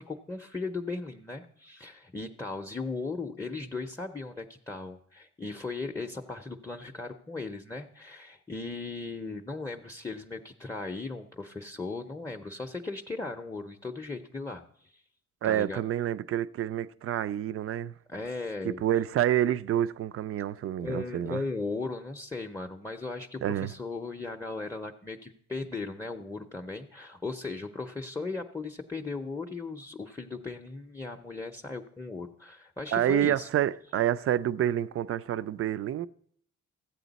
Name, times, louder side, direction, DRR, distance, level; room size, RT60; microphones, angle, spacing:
voice 1, 0.0-15.0 15.4-15.8 18.1-18.8 20.8-33.5, left 3 dB, 10° left, 0.6 m, -37 dB
voice 2, 15.4-17.9 18.6-21.4 23.4-23.7 32.9-36.1, right 11 dB, 50° right, 0.4 m, -28 dB
14.5 x 8.4 x 4.0 m
cardioid pair, 90°, 30 cm